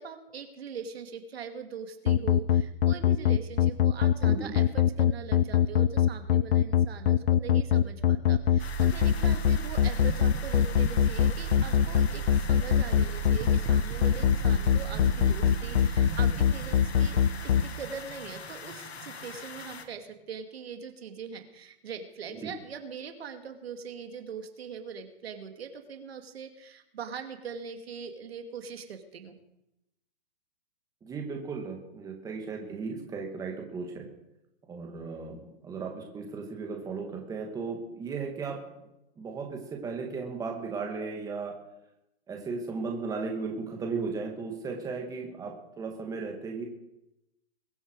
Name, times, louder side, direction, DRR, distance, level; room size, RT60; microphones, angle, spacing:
voice 1, 0.0-17.2 17.6-29.3, right 6 dB, 75° right, 6 dB, 2.5 m, -42 dB
sound 1, 2.1-17.6, left 9 dB, 65° left, 0.7 m, -22 dB
sound 2, 8.2-20.1, right 10 dB, 30° right, 1.4 m, -37 dB
sound 3, 8.6-19.8, left 6 dB, 90° left, 2.0 m, -43 dB
voice 2, 31.1-34.1 34.7-38.6 39.2-41.5 42.3-46.6, right 4 dB, 10° right, 1 dB, 2.2 m, -36 dB
22.5 x 8.9 x 4.9 m, 0.88 s
hypercardioid pair, 150°, 31 cm